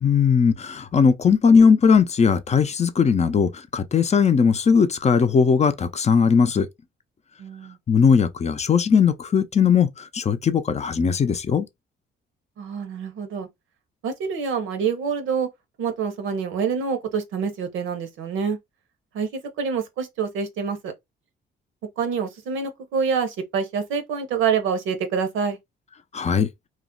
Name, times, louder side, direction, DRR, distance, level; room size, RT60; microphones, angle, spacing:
voice 1, 0.0-6.7 7.9-9.9 10.1-11.7 26.1-26.5, left 6 dB, 35° left, 0.5 m, -18 dB
voice 2, 7.4-7.8 12.6-13.5 14.0-15.5 15.8-18.6 19.1-20.9 22.0-25.6, right 6 dB, 85° right, 0.8 m, -26 dB
2.4 x 2.0 x 3.7 m
cardioid pair, 90°, 20 cm